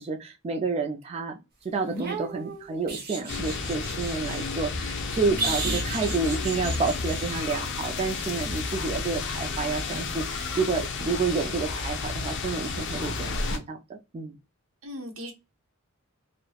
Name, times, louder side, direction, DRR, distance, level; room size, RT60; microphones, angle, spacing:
voice 1, 0.0-1.4 1.6-14.3, right 4 dB, 30° right, 3 dB, 0.3 m, -30 dB
sound 1, 1.8-4.5 5.4-7.4 10.1-10.2, right 3 dB, 45° right, 0.8 m, -34 dB
sound 2, 3.3-13.6, left 3 dB, 60° left, 0.5 m, -31 dB
voice 2, 5.3-6.3 14.8-15.3, equal, 75° right, 4 dB, 0.8 m, -39 dB
3.1 x 2.1 x 2.2 m, 0.25 s
head